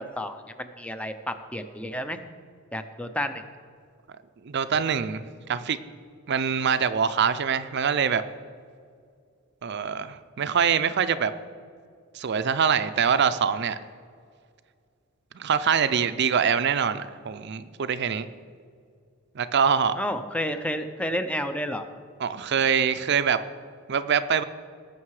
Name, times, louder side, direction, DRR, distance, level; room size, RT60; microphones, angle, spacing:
voice 1, 0.0-2.2 2.7-3.4 20.0-21.8, left 1 dB, 5° left, 8 dB, 0.6 m, -31 dB
voice 2, 4.4-5.8 6.3-8.2 9.6-11.3 12.1-13.8 15.3-18.3 19.4-20.0 22.2-23.4 23.9-24.4, right 7 dB, 55° right, 12 dB, 0.5 m, -24 dB
18.5 x 6.5 x 4.9 m, 2.2 s
head